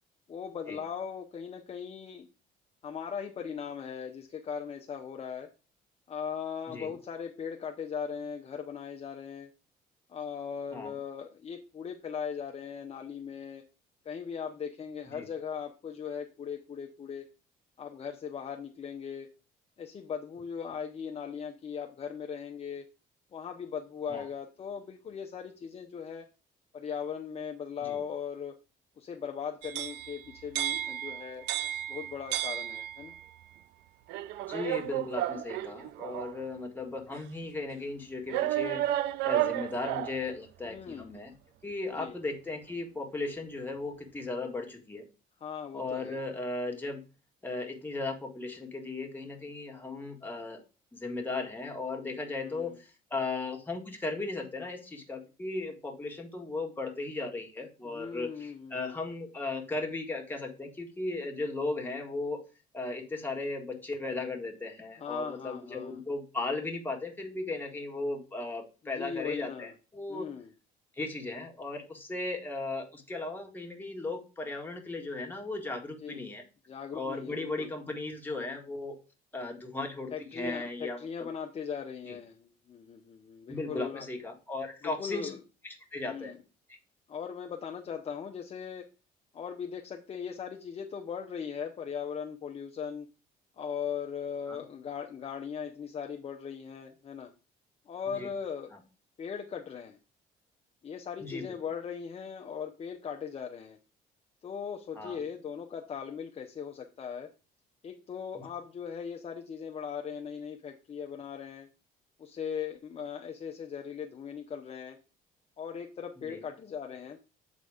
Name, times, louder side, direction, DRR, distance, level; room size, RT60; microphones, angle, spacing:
voice 1, 0.3-2.3 2.8-5.5 6.1-9.5 10.1-13.6 14.0-17.3 17.8-19.3 19.8-22.8 23.3-26.3 26.7-28.6 29.0-31.5 31.9-33.1 40.7-41.1 42.0-42.2 45.4-46.2 52.3-52.8 57.8-59.0 65.0-66.0 68.9-69.7 70.1-70.5 76.0-76.3 76.7-77.7 80.1-84.1 84.8-85.4 86.0-86.4 87.1-88.9 89.3-93.1 93.6-97.3 97.9-98.7 99.2-100.0 100.8-103.8 104.4-107.3 107.8-111.7 112.2-115.0 115.6-117.2, left 7 dB, 35° left, 2 dB, 0.8 m, -39 dB
sound 1, 29.6-33.3 34.1-36.4 37.1-37.2 38.3-40.2, right 13 dB, 85° right, 0.5 m, -33 dB
voice 2, 34.5-38.8 39.2-41.3 41.6-45.0 45.7-47.0 47.4-50.6 50.9-62.4 62.7-70.3 71.0-76.4 76.9-79.0 79.3-81.3 82.1-82.2 83.5-85.3 85.9-86.3 94.5-94.6 98.2-98.3 101.2-101.4 105.0-105.2 116.3-116.4, left 3 dB, 10° left, 1 dB, 1.8 m, -36 dB
7.9 x 4.0 x 5.0 m, 0.33 s
cardioid pair, 110°, 17 cm